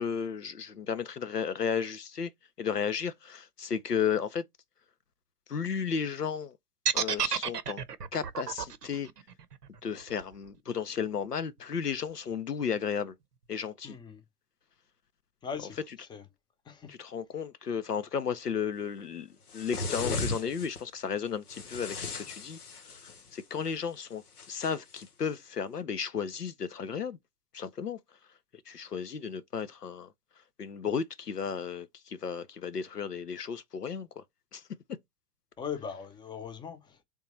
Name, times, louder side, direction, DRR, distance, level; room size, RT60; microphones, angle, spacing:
voice 1, 0.0-2.3 2.6-4.4 5.5-6.5 6.9-7.8 8.1-9.1 9.8-13.1 13.5-14.0 16.9-22.6 23.3-24.2 24.5-27.2 27.5-28.0 28.7-30.1 30.6-34.2 34.5-34.6 34.9-35.0, left 7 dB, 90° left, 0.6 m, -34 dB
sound 1, 6.9-10.9, right 7 dB, 85° right, 0.7 m, -32 dB
voice 2, 13.8-14.2 15.4-16.3 16.6-17.0 35.6-37.0, left 7 dB, 10° left, 0.6 m, -40 dB
sound 2, 19.5-20.8 21.5-23.3 24.4-25.1, left 3 dB, 70° left, 1.1 m, -36 dB
3.6 x 2.9 x 4.0 m
figure-of-eight pair, 90°, 46 cm